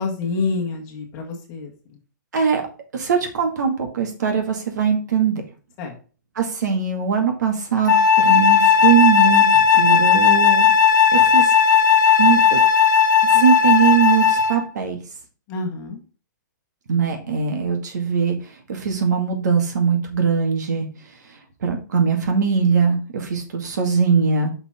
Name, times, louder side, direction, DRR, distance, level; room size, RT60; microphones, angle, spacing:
voice 1, 0.0-1.7 5.8-5.9 15.5-16.0, left 4 dB, 25° left, 1 dB, 1.7 m, -27 dB
voice 2, 2.9-5.4 6.4-10.7 11.1-11.5 12.2-12.6 13.3-15.0 16.9-18.4 18.7-20.9 21.6-24.5, right 6 dB, 70° right, 3 dB, 2.2 m, -21 dB
Wind instrument woodwind instrument, 7.9-14.6, left 7 dB, 80° left, 1.1 m, -15 dB
5.9 x 5.7 x 3.7 m, 0.36 s
hypercardioid pair, 160°, 10 cm